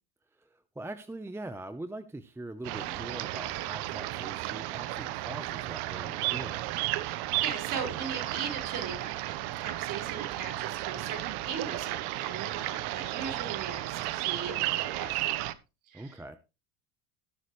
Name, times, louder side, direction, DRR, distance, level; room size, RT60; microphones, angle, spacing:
voice 1, 0.4-6.8 15.9-16.4, right 2 dB, 5° right, 0.7 m, -42 dB
sound 1, 2.6-15.5, right 16 dB, 60° right, 1.0 m, -33 dB
voice 2, 7.0-15.5 15.9-16.4, right 6 dB, 45° right, 5.1 m, -39 dB
19.5 x 6.6 x 3.1 m
supercardioid pair, 115°, 46 cm